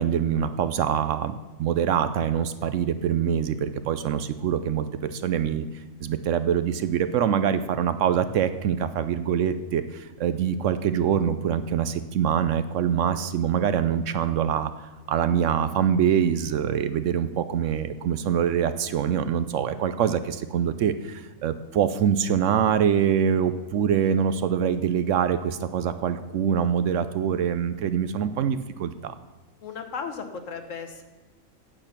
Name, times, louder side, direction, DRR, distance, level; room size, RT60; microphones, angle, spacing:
voice 1, 0.0-5.6 6.0-29.1, right 8 dB, 70° right, 12 dB, 0.9 m, -24 dB
voice 2, 29.6-31.0, left 6 dB, 70° left, 6 dB, 1.5 m, -35 dB
9.0 x 8.6 x 5.9 m, 1.3 s
omnidirectional pair, 1.4 m